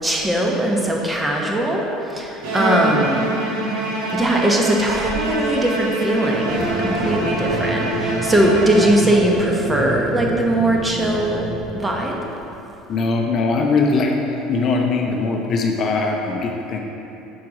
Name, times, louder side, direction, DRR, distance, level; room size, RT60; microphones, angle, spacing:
voice 1, 0.0-3.2 4.1-12.2, right 1 dB, 15° right, -1 dB, 1.0 m, -20 dB
Bowed string instrument, 2.4-9.4, right 2 dB, 85° right, 1.0 m, -25 dB
sound 1, 6.5-12.5, right 1 dB, 65° right, 1.4 m, -28 dB
voice 2, 12.9-14.2 14.5-16.8, left 3 dB, 45° left, 2 dB, 0.6 m, -20 dB
6.3 x 4.5 x 4.8 m, 3.0 s
supercardioid pair, 105°, 0 cm